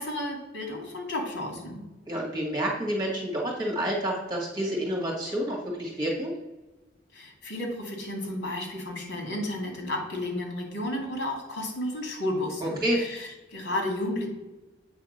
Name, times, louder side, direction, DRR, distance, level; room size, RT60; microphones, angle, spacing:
voice 1, 0.0-1.8 7.1-14.3, left 1 dB, 85° left, 1 dB, 2.3 m, -32 dB
voice 2, 2.1-6.3 12.6-13.0, right 1 dB, 20° right, -2 dB, 2.0 m, -29 dB
8.1 x 3.5 x 6.5 m, 1.1 s
head